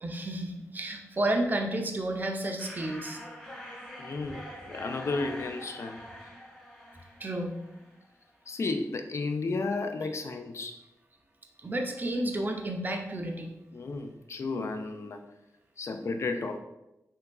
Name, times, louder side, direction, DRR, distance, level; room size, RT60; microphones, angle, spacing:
voice 1, 0.0-3.2 7.2-7.5 11.6-13.5, right 1 dB, 30° right, 3 dB, 0.4 m, -31 dB
sound 1, 2.6-8.1, equal, 15° left, 1.2 m, -45 dB
voice 2, 4.0-6.1 8.5-10.8 13.7-15.2 15.8-16.6, left 3 dB, 50° left, 7 dB, 0.3 m, -33 dB
3.4 x 2.8 x 2.3 m, 0.91 s
cardioid pair, 80°, 6 cm